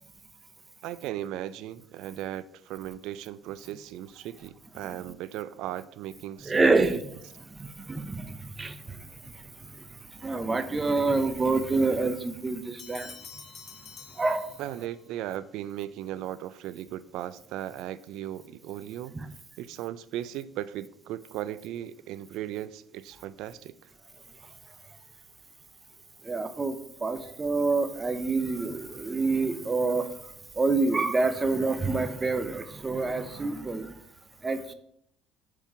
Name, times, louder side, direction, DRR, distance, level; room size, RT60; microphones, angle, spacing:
voice 1, 0.8-6.8 14.6-19.1 19.6-23.7, right 12 dB, 75° right, 16 dB, 0.3 m, -37 dB
voice 2, 6.4-7.2 7.5-9.5 9.9-13.1 14.2-14.5 19.1-19.3 26.2-30.1 30.6-34.0 34.4-34.7, right 3 dB, 20° right, 11 dB, 0.7 m, -27 dB
sound 1, 12.8-15.0, left 6 dB, 45° left, 0.7 m, -47 dB
5.3 x 4.6 x 4.7 m, 0.70 s
supercardioid pair, 90°, 0 cm